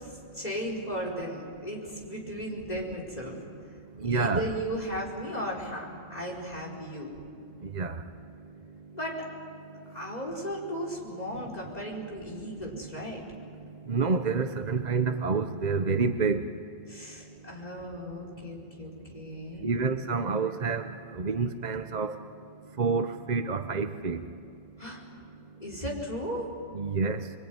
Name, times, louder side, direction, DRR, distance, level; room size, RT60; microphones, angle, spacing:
voice 1, 0.1-3.4 4.0-7.1 8.9-9.3 9.9-13.2 16.9-19.7 24.8-25.0 25.6-26.5, equal, 30° left, -1 dB, 5.1 m, -36 dB
voice 2, 4.0-4.5 7.6-8.0 11.6-11.7 12.7-13.4 13.8-16.4 19.6-22.2 22.8-24.3 26.7-27.3, right 4 dB, 40° right, 8 dB, 0.9 m, -29 dB
25.5 x 23.0 x 9.6 m, 2.4 s
omnidirectional pair, 1.3 m